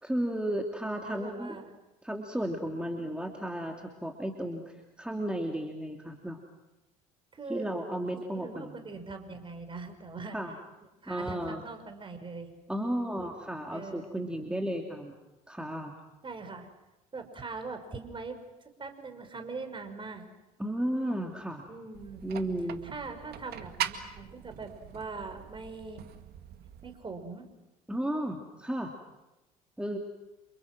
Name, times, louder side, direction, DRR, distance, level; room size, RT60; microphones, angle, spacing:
voice 1, 0.0-1.6 2.0-6.4 7.5-8.9 10.3-10.5 11.1-11.6 12.7-15.1 15.5-15.9 20.6-21.7 22.2-22.8 27.9-28.9 29.8-30.0, right 1 dB, 5° right, 2 dB, 3.0 m, -34 dB
voice 2, 1.0-1.7 7.3-7.7 8.2-10.4 11.0-12.5 13.7-14.1 16.2-16.7 17.1-18.4 18.8-20.3 21.7-22.2 22.9-26.0 26.8-27.5, right 4 dB, 25° right, 6 dB, 5.7 m, -41 dB
sound 1, 21.9-27.0, right 10 dB, 55° right, 2.1 m, -41 dB
29.5 x 28.5 x 6.2 m, 1.0 s
hypercardioid pair, 65°, 19 cm